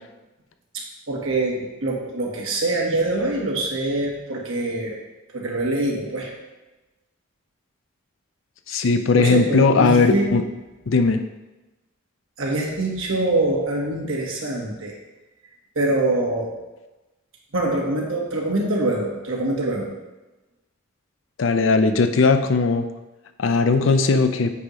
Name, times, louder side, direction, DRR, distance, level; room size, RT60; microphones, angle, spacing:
voice 1, 0.7-5.0 5.3-6.3 8.7-8.9 9.2-10.3 12.4-14.9 15.7-16.5 17.5-19.9, right 2 dB, 85° right, -1 dB, 1.5 m, -24 dB
voice 2, 8.7-10.4 10.9-11.2 21.4-22.8 23.4-24.5, left 4 dB, 75° left, 8 dB, 0.5 m, -18 dB
8.3 x 3.1 x 5.4 m, 1.1 s
head